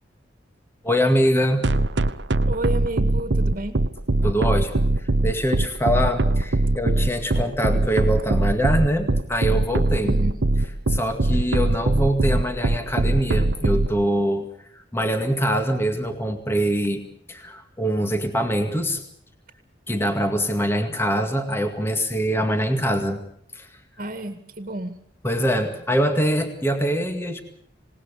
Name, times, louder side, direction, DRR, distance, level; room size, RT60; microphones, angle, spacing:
voice 1, 0.8-1.7 4.2-10.2 10.9-14.5 14.7-19.0 19.9-23.2 23.5-23.7 25.2-27.4, equal, 15° left, 5 dB, 2.1 m, -24 dB
sound 1, 1.6-13.9, right 2 dB, 90° right, 1.0 m, -20 dB
voice 2, 2.5-3.8 10.0-10.4 24.0-25.0, right 1 dB, 50° right, 8 dB, 2.1 m, -31 dB
27.0 x 19.0 x 6.9 m, 0.66 s
head